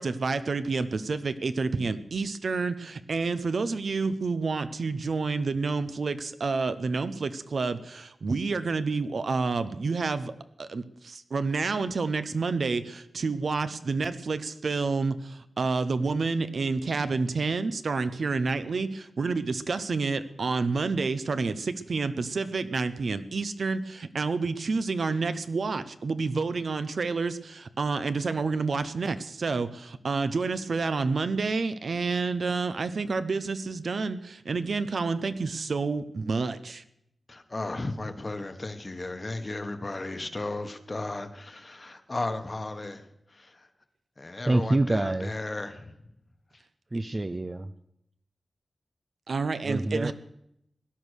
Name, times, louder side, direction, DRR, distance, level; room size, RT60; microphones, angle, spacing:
voice 1, 0.0-10.3 10.6-36.8 49.3-50.1, right 4 dB, 60° right, 0.8 m, -29 dB
voice 2, 37.3-43.0 43.4-43.5 44.2-45.9, left 2 dB, 30° left, 1.2 m, -35 dB
voice 3, 44.5-45.3 46.9-47.7 49.6-50.1, right 2 dB, 25° right, 0.5 m, -26 dB
17.5 x 11.0 x 6.4 m
wide cardioid pair, 120°, 0 cm